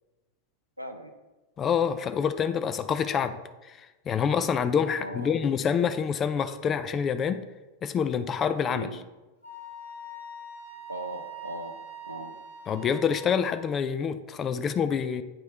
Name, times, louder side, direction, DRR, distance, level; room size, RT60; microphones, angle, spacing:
voice 1, 0.8-1.2 4.9-5.5 8.7-9.0 10.9-12.4, right 1 dB, 90° right, 7 dB, 0.5 m, -39 dB
voice 2, 1.6-3.4 3.6-7.5 7.8-8.9 12.7-15.2, left 7 dB, 25° left, 11 dB, 0.3 m, -27 dB
Wind instrument woodwind instrument, 9.4-13.6, right 1 dB, 85° left, 1.7 m, -43 dB
8.7 x 3.1 x 3.5 m, 1.1 s
figure-of-eight pair, 90°, 0 cm